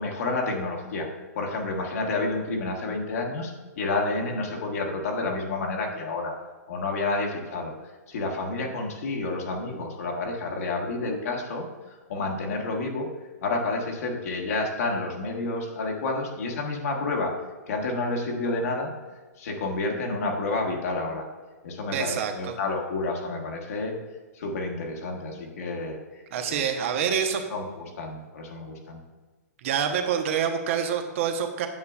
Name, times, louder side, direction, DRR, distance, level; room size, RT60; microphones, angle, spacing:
voice 1, 0.0-6.3 6.7-11.7 12.1-13.1 13.4-17.4 17.7-18.9 19.4-21.3 21.6-23.9 24.3-26.0 26.5-26.7 27.5-29.0, left 3 dB, 60° left, 0 dB, 1.5 m, -30 dB
voice 2, 21.9-22.6 26.3-27.4 29.6-31.7, right 7 dB, 50° right, 6 dB, 0.9 m, -26 dB
9.4 x 6.7 x 2.4 m, 1.3 s
hypercardioid pair, 135°, 9 cm